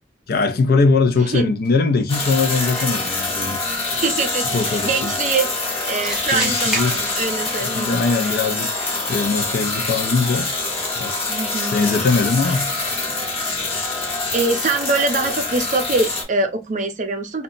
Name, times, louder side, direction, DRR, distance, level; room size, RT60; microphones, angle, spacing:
voice 1, 0.3-3.6 4.5-5.1 6.3-7.0 7.6-8.7 9.1-10.5 11.0-11.3 11.7-12.8, left 4 dB, 55° left, 0.4 m, -21 dB
voice 2, 1.2-1.5 3.9-5.5 5.8-8.0 8.2-8.4 11.3-11.8 14.3-17.4, right 3 dB, 40° right, 0.5 m, -23 dB
sound 1, 2.1-16.2, left 3 dB, 35° left, 0.8 m, -25 dB
sound 2, 2.7-3.2 6.0-7.6, right 1 dB, 5° right, 0.7 m, -30 dB
2.2 x 2.0 x 3.7 m
head